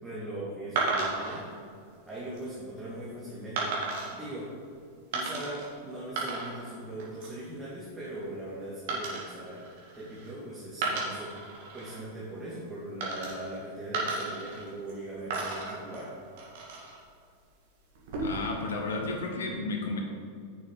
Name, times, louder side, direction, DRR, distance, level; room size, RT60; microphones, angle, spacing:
voice 1, 0.0-1.5 2.1-3.8 4.1-4.5 5.1-9.6 9.9-11.3 11.7-16.1, right 1 dB, 5° right, -9 dB, 2.3 m, -40 dB
sound 1, 0.8-1.4 2.1-2.4 3.6-4.2 5.1-5.7 6.0-6.7 7.0-7.4 8.9-10.3 10.7-12.0 13.0-13.6 13.9-15.0 15.3-17.0 17.9-18.5, right 3 dB, 50° right, 2.1 m, -34 dB
voice 2, 18.2-20.0, left 3 dB, 65° left, 2 dB, 1.1 m, -32 dB
9.9 x 6.3 x 3.9 m, 2.3 s
figure-of-eight pair, 90°, 0 cm